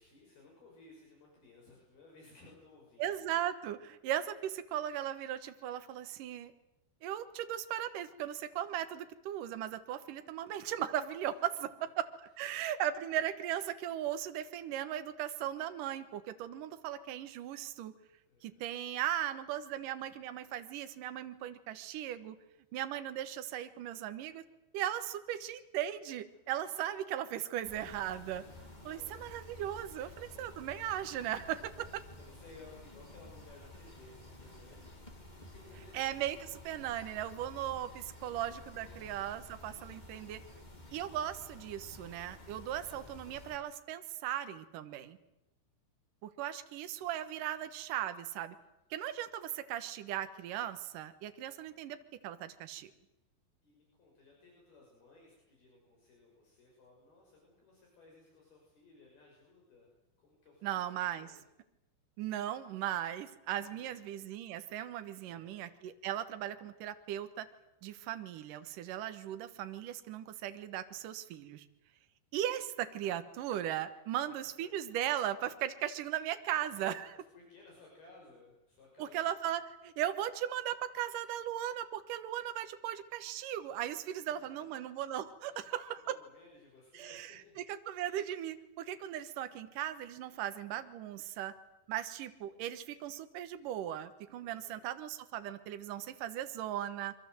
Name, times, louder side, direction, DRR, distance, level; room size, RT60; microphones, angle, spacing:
voice 1, 0.0-3.1 18.3-18.7 26.6-26.7 28.9-29.2 29.9-30.1 31.2-31.4 32.2-35.0 35.4-36.0 36.9-37.5 38.1-38.4 38.7-39.1 53.6-59.9 60.2-61.4 63.8-64.0 65.2-65.7 74.6-74.7 77.1-79.2 84.2-84.3 84.7-84.8 85.5-85.7 86.2-87.6 94.4-94.9, left 3 dB, 60° left, -1 dB, 8.0 m, -59 dB
voice 2, 3.0-6.5 7.0-12.1 12.4-18.0 18.4-22.4 22.7-24.4 24.7-28.4 28.8-32.0 35.9-40.4 40.9-45.2 46.2-48.6 48.9-52.9 60.6-61.3 62.2-67.5 67.8-71.6 72.3-77.2 79.0-86.2 86.9-91.5 91.9-97.1, right 11 dB, 65° right, 10 dB, 2.4 m, -37 dB
sound 1, 27.6-43.6, left 1 dB, 15° left, 1.8 m, -52 dB
26.5 x 23.5 x 7.9 m, 0.94 s
omnidirectional pair, 5.1 m